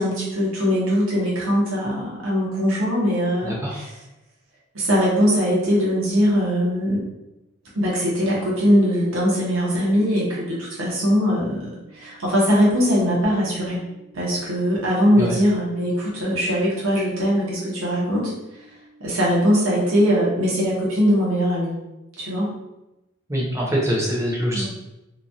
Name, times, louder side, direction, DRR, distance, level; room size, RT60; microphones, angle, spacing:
voice 1, 0.0-3.9 4.7-7.0 7.7-13.8 14.1-18.3 19.0-21.8 22.2-22.5 24.5-24.6, equal, 85° right, -5 dB, 0.9 m, -21 dB
voice 2, 3.4-3.8 15.2-15.3 23.3-24.6, equal, 15° right, -4 dB, 0.6 m, -24 dB
sound 1, 10.0-20.0, right 1 dB, 25° left, 0.5 m, -51 dB
2.9 x 2.2 x 2.6 m, 0.95 s
head